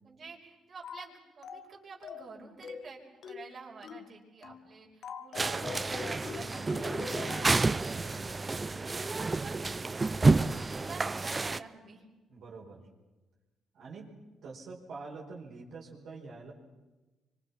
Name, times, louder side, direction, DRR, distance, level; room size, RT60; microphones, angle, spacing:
voice 1, 0.0-5.6 5.9-10.1 10.3-12.1, right 4 dB, 45° right, -1 dB, 5.8 m, -49 dB
sound 1, 0.8-1.1 1.4-1.7 2.0-2.3 2.6-2.9 3.2-3.5 3.8-4.1 4.4-4.7 5.0-7.7, left 6 dB, 65° left, 1.6 m, -43 dB
sound 2, 5.3-11.6, right 3 dB, 25° right, 0.7 m, -29 dB
voice 2, 12.3-12.9 13.7-16.5, right 4 dB, 70° right, -3 dB, 5.0 m, -46 dB
26.0 x 25.0 x 6.0 m, 1.2 s
cardioid pair, 90°, 0 cm